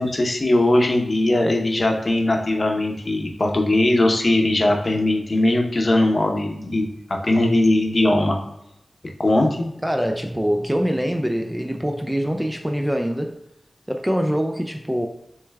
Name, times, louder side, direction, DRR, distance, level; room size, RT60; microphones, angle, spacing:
voice 1, 0.0-6.8 7.2-8.4 9.2-9.7, left 1 dB, 40° left, 2 dB, 0.8 m, -19 dB
voice 2, 9.8-13.3 13.9-15.1, equal, 5° right, 4 dB, 0.3 m, -24 dB
6.6 x 3.2 x 2.3 m, 0.84 s
wide cardioid pair, 95°, 0 cm